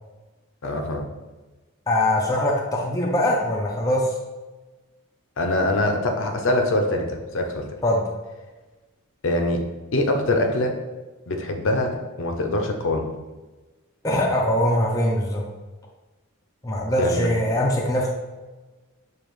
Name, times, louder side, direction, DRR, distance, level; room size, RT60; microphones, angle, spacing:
voice 1, 0.6-1.1 5.4-7.7 9.2-9.6 9.9-10.8 11.3-13.1 17.0-17.3, left 1 dB, 60° left, 3 dB, 0.6 m, -23 dB
voice 2, 1.9-4.2 7.8-8.0 14.0-15.4 16.6-18.1, left 1 dB, 15° left, -1 dB, 0.5 m, -22 dB
7.0 x 2.4 x 3.1 m, 1.2 s
head